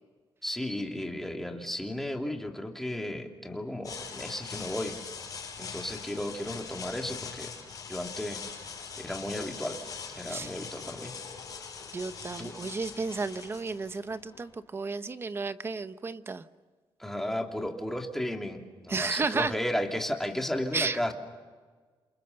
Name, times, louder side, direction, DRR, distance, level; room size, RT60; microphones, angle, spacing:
voice 1, 0.4-5.0 5.6-7.5 7.9-8.4 9.0-9.8 10.1-11.1 12.4-12.6 17.0-21.1, left 1 dB, 5° left, 2 dB, 2.9 m, -34 dB
sound 1, 3.8-14.5, left 6 dB, 40° left, 7.3 m, -42 dB
voice 2, 11.9-16.4 18.9-19.5 20.7-21.1, right 4 dB, 25° right, 12 dB, 1.0 m, -32 dB
29.0 x 28.0 x 6.8 m, 1.4 s
cardioid pair, 140°, 9 cm